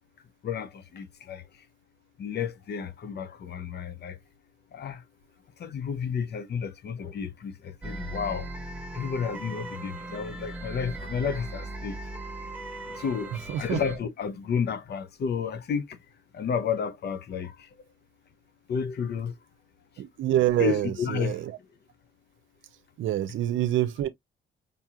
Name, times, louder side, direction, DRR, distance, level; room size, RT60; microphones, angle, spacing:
voice 1, 0.4-1.6 2.2-4.2 4.7-5.0 5.6-8.5 8.9-12.0 12.8-16.0 16.3-17.7 18.7-19.3 20.6-21.5, left 6 dB, 55° left, 0.8 m, -31 dB
sound 1, 7.8-14.0, right 1 dB, 10° right, 1.5 m, -38 dB
voice 2, 20.0-21.4 23.0-24.1, right 13 dB, 75° right, 0.7 m, -26 dB
5.3 x 2.8 x 2.4 m
cardioid pair, 90°, 20 cm